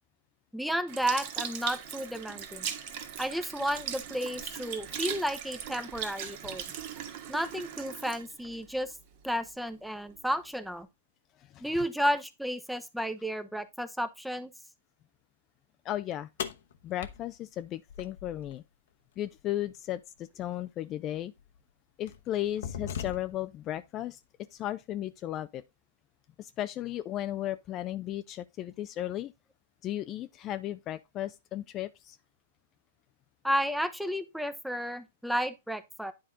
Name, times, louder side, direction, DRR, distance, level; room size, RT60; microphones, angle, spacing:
voice 1, 0.5-2.7 3.2-6.6 7.3-8.9 9.2-10.9 11.6-14.5 33.4-36.1, equal, ahead, 0.8 m, -32 dB
Sink (filling or washing) / Liquid, 0.9-9.5 10.1-10.2, right 9 dB, 50° right, 1.7 m, -39 dB
voice 2, 11.4-11.8 15.8-16.3 16.8-18.6 19.2-21.3 22.0-24.2 24.5-25.6 26.4-29.3 29.8-32.2, left 13 dB, 30° left, 0.5 m, -35 dB
sound 1, 16.4-18.6 20.4-20.5 21.4-21.6 22.1-23.6, left 8 dB, 70° left, 1.0 m, -39 dB
10.0 x 4.2 x 3.7 m
hypercardioid pair, 125°, 0 cm